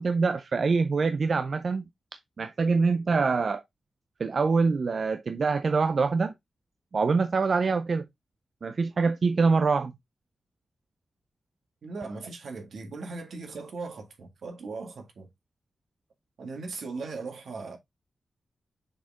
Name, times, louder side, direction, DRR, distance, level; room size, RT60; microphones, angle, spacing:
voice 1, 0.0-1.9 2.4-3.6 4.2-6.3 6.9-8.0 8.6-9.9, right 4 dB, 45° right, 0.5 m, -24 dB
voice 2, 11.8-15.3 16.4-17.8, right 3 dB, 75° right, 1.9 m, -38 dB
6.5 x 4.4 x 3.6 m
wide cardioid pair, 165°, 0 cm